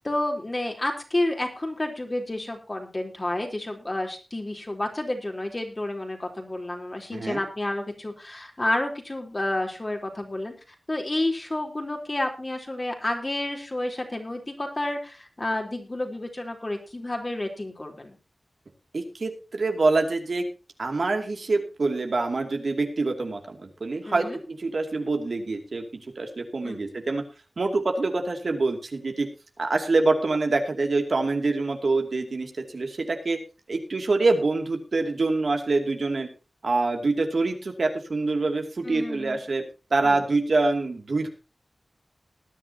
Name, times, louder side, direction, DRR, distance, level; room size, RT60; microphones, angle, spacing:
voice 1, 0.0-10.5 10.9-18.2 24.1-24.4 26.6-26.8 38.8-39.4 40.0-40.2, left 1 dB, 35° left, 3 dB, 3.7 m, -30 dB
voice 2, 7.1-7.4 18.9-20.4 20.8-25.8 26.2-27.2 27.6-29.3 29.6-33.4 33.7-36.3 36.6-39.6 39.9-41.3, right 3 dB, 75° right, 4 dB, 2.5 m, -25 dB
20.0 x 10.0 x 2.8 m, 0.32 s
wide cardioid pair, 65°, 0 cm